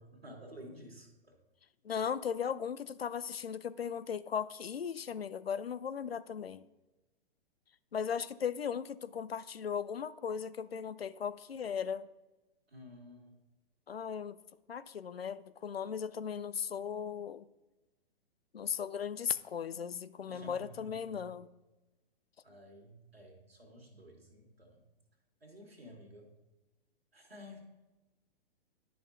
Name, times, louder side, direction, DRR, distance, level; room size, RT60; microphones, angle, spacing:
voice 1, 0.0-1.4 12.7-13.4 20.3-21.2 22.4-24.8 25.4-26.3 27.1-27.6, equal, 80° right, 1 dB, 1.9 m, -52 dB
voice 2, 1.8-6.7 7.9-12.1 13.9-14.4 14.7-17.5 18.5-21.5, left 7 dB, 80° left, 15 dB, 0.5 m, -37 dB
11.0 x 5.4 x 2.7 m, 1.1 s
figure-of-eight pair, 115°, 30 cm